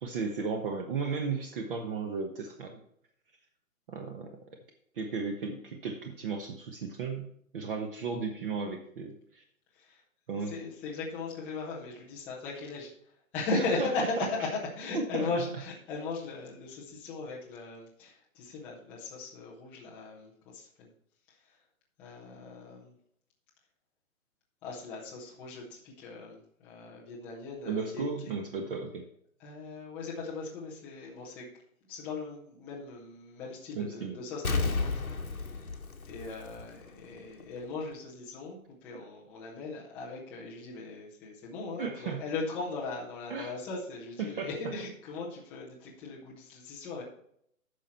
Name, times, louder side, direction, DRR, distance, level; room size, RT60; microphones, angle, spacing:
voice 1, 0.0-2.8 3.9-4.3 4.9-9.4 10.3-10.5 13.5-13.9 14.9-15.3 27.7-29.1 33.7-34.2 41.8-42.2 43.3-43.5 44.2-44.5, right 4 dB, 40° right, 5 dB, 1.1 m, -35 dB
voice 2, 10.3-12.9 13.3-20.9 21.3-21.6 22.0-22.9 24.6-28.3 29.4-31.5 31.9-35.1 35.4-35.7 36.0-47.0, left 3 dB, 5° left, -5 dB, 0.5 m, -38 dB
Explosion, 34.4-37.0 37.4-37.5, left 3 dB, 90° left, 1.4 m, -32 dB
9.9 x 6.1 x 4.3 m, 0.69 s
figure-of-eight pair, 135°, 42 cm